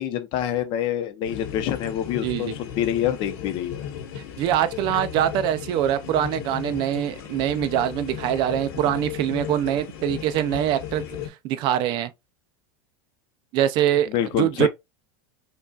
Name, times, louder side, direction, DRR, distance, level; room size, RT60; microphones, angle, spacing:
voice 1, 0.0-3.8 14.1-14.7, left 10 dB, 40° left, 0.7 m, -26 dB
sound 1, 1.2-11.3, left 9 dB, 65° left, 1.0 m, -35 dB
voice 2, 2.2-2.5 4.2-11.0 11.4-12.1 13.5-14.1 14.4-14.7, right 11 dB, 40° right, 0.3 m, -23 dB
5.3 x 2.3 x 2.3 m
supercardioid pair, 155°, 13 cm